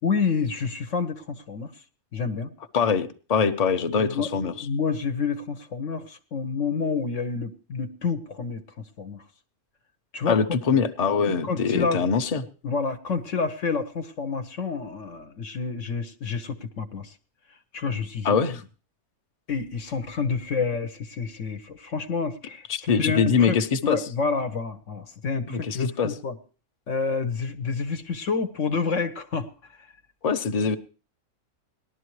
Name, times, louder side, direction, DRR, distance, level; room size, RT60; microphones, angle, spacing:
voice 1, 0.0-1.7 2.1-2.5 3.9-9.2 10.1-10.4 11.3-12.0 12.6-17.1 17.7-18.4 19.5-26.4 26.9-29.9, left 5 dB, 60° left, 7 dB, 1.2 m, -29 dB
voice 2, 2.7-4.5 10.3-12.4 18.2-18.6 22.7-24.0 25.5-26.1 30.2-30.8, left 6 dB, 35° left, 8 dB, 0.7 m, -23 dB
19.0 x 12.0 x 3.1 m, 0.37 s
omnidirectional pair, 1.5 m